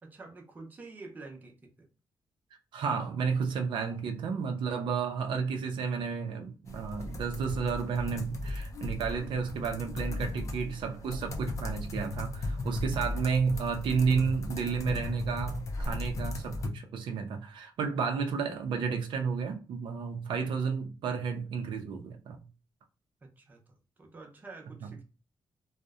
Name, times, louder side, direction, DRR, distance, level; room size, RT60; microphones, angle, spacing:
voice 1, 0.0-1.9 23.2-25.0, right 3 dB, 20° right, 0.5 m, -48 dB
voice 2, 2.7-22.4 24.8-24.9, right 5 dB, 85° right, 0.4 m, -32 dB
sound 1, 6.7-16.7, left 2 dB, 40° left, 0.4 m, -36 dB
2.6 x 2.0 x 2.3 m
wide cardioid pair, 165°, 8 cm